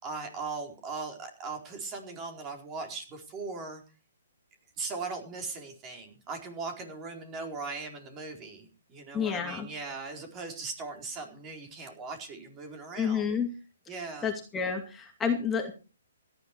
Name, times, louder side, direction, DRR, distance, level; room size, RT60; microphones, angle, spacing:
voice 1, 0.0-3.8 4.8-13.2 13.9-14.3, right 4 dB, 25° right, 4 dB, 4.2 m, -39 dB
voice 2, 9.1-9.7 13.0-13.5 14.2-15.7, left 6 dB, 15° left, 2 dB, 2.3 m, -29 dB
17.0 x 12.0 x 4.6 m, 0.35 s
hypercardioid pair, 135°, 0 cm